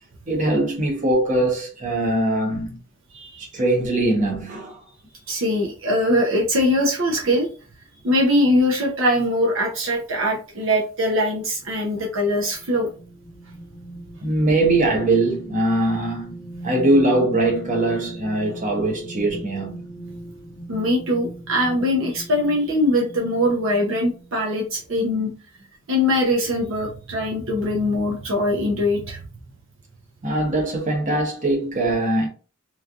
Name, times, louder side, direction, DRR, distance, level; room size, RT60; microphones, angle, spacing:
voice 1, 0.3-2.8 3.4-4.8 14.2-19.9 30.2-32.3, right 2 dB, 35° right, 0.9 m, -21 dB
voice 2, 3.1-3.5 5.3-7.5 8.0-12.9 20.7-25.3 25.9-29.2, left 1 dB, 65° right, 0.6 m, -22 dB
sound 1, 11.9-24.6 25.0-25.2, right 1 dB, 20° right, 1.3 m, -39 dB
3.1 x 2.5 x 2.3 m
head